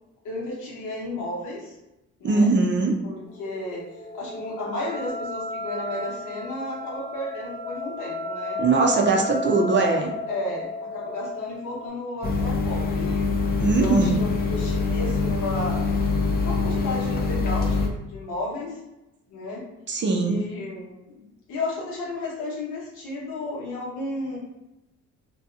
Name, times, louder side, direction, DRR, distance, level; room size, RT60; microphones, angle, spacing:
voice 1, 0.2-1.8 2.2-2.5 3.0-3.8 4.1-8.6 9.5-9.7 10.3-13.3 13.7-15.8 16.4-18.8 19.3-19.7 20.1-24.4, left 2 dB, 85° left, -4 dB, 0.9 m, -33 dB
voice 2, 2.2-2.9 8.6-10.1 13.6-14.2 19.9-20.4, right 3 dB, 40° right, 1 dB, 0.5 m, -21 dB
sound 1, 3.3-11.9, left 2 dB, 65° right, 0.9 m, -33 dB
sound 2, 12.2-17.9, left 4 dB, 30° left, 0.5 m, -24 dB
2.7 x 2.3 x 2.4 m, 0.95 s
cardioid pair, 90°, 30 cm